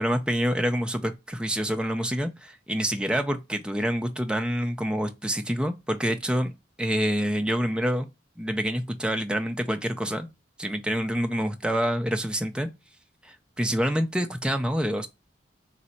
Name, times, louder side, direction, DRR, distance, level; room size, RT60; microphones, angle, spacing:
voice 1, 0.0-6.5 6.8-8.1 8.4-10.3 10.6-12.7 13.2-15.1, equal, 5° right, 0.4 m, -27 dB
4.0 x 2.6 x 4.3 m
head